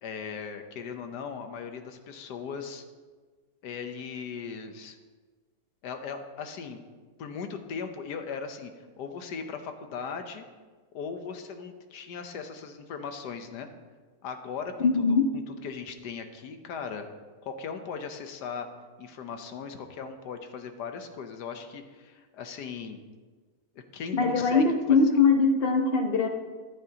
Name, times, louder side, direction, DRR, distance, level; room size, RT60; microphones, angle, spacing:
voice 1, 0.0-2.8 3.6-5.0 5.8-6.8 7.2-8.7 9.0-10.4 10.9-13.7 14.2-17.1 17.4-18.7 19.0-23.0 23.7-24.6 24.9-25.0, left 6 dB, 85° left, 7 dB, 1.5 m, -38 dB
voice 2, 14.8-15.2 24.1-26.3, left 4 dB, 45° left, 4 dB, 1.0 m, -22 dB
13.5 x 11.0 x 2.9 m, 1.4 s
omnidirectional pair, 1.7 m